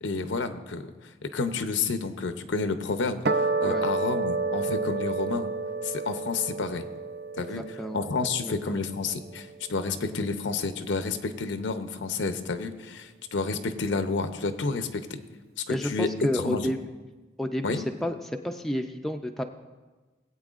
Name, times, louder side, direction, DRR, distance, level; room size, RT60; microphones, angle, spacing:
voice 1, 0.0-5.5 5.8-6.9 7.4-15.2 15.7-16.1 16.3-16.7 17.6-17.8, left 4 dB, 90° left, 9 dB, 0.7 m, -30 dB
sound 1, 3.3-9.8, right 3 dB, 55° right, 0.5 m, -30 dB
voice 2, 7.5-8.0 8.4-8.8 15.7-16.8 17.4-18.2 18.4-19.4, left 1 dB, ahead, 3 dB, 0.4 m, -30 dB
20.0 x 8.4 x 2.5 m, 1.2 s
head